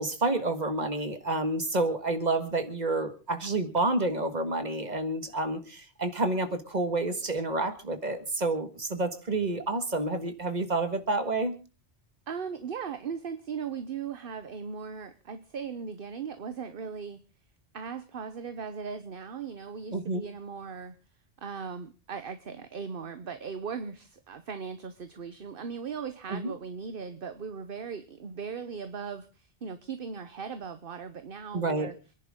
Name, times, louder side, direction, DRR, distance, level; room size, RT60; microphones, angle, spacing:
voice 1, 0.0-11.5 19.9-20.2 26.3-26.5 31.5-31.9, right 2 dB, 40° right, 9 dB, 1.9 m, -29 dB
voice 2, 12.3-17.2 17.7-21.0 21.4-31.9, right 6 dB, 55° right, 11 dB, 1.1 m, -38 dB
27.5 x 10.5 x 3.7 m, 0.34 s
omnidirectional pair, 1.2 m